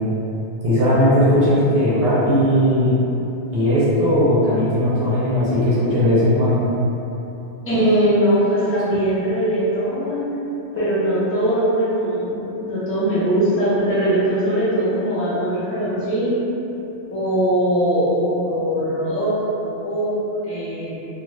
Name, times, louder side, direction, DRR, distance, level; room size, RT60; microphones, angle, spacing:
voice 1, 0.6-3.0 3.5-6.6, equal, 60° right, -10 dB, 1.0 m, -17 dB
voice 2, 7.6-16.4 17.1-21.0, right 1 dB, 15° left, -12 dB, 0.7 m, -21 dB
2.5 x 2.4 x 3.1 m, 3.0 s
omnidirectional pair, 1.2 m